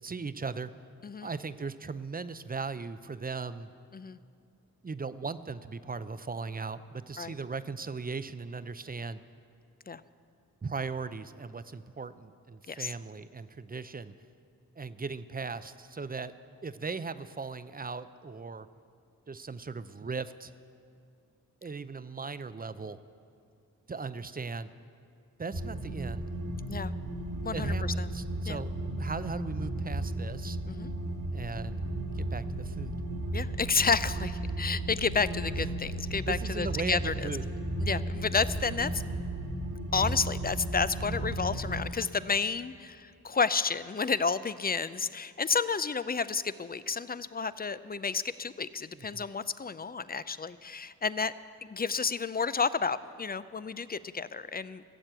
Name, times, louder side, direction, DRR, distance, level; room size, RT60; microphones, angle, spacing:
voice 1, 0.0-0.7 1.2-3.7 4.8-9.2 10.6-14.1 14.8-16.3 16.6-18.7 19.3-20.5 21.6-23.0 23.9-24.7 25.4-26.3 27.5-30.6 31.3-31.8 32.1-33.0 35.6-35.7 36.3-37.5 48.9-49.2, right 4 dB, 25° right, 13 dB, 0.5 m, -38 dB
sound 1, 25.5-41.8, right 1 dB, 55° right, 1.6 m, -34 dB
voice 2, 27.4-28.1 28.5-28.6 30.7-30.9 33.3-37.3 37.8-39.0 39.4-39.5 39.9-51.3 51.6-54.8, left 5 dB, 25° left, 15 dB, 0.5 m, -31 dB
15.0 x 7.4 x 8.0 m, 2.3 s
supercardioid pair, 40°, 38 cm